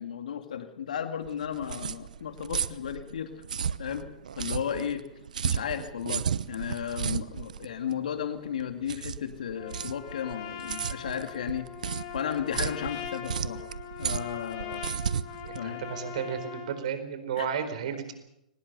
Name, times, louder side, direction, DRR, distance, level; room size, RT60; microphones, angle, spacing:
voice 1, 0.0-3.3 3.8-4.1 4.4-5.0 5.4-11.7 12.1-13.6 14.0-14.8 15.5-15.8 17.4-17.5, left 8 dB, 75° left, 8 dB, 2.2 m, -34 dB
sound 1, 1.2-16.4, right 7 dB, 80° right, 0.9 m, -34 dB
Trumpet, 9.6-16.8, left 9 dB, 50° left, 3.8 m, -41 dB
voice 2, 15.4-18.1, right 7 dB, 65° right, 9 dB, 4.5 m, -33 dB
23.5 x 19.5 x 6.8 m, 0.82 s
hypercardioid pair, 120°, 4 cm